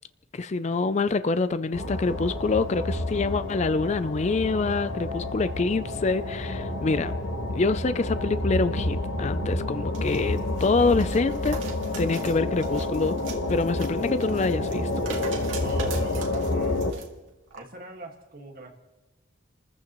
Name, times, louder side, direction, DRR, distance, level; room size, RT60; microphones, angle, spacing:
voice 1, 0.3-7.1 7.5-11.6 12.0-13.2 13.5-14.9, left 3 dB, 35° left, 0.4 m, -26 dB
sound 1, 1.7-16.9, left 2 dB, 80° left, 1.2 m, -29 dB
sound 2, 9.9-17.1 17.5-17.6, right 5 dB, 90° right, 2.1 m, -42 dB
voice 2, 15.5-16.8 17.5-18.7, right 2 dB, 50° right, 1.8 m, -41 dB
29.5 x 14.5 x 3.0 m
head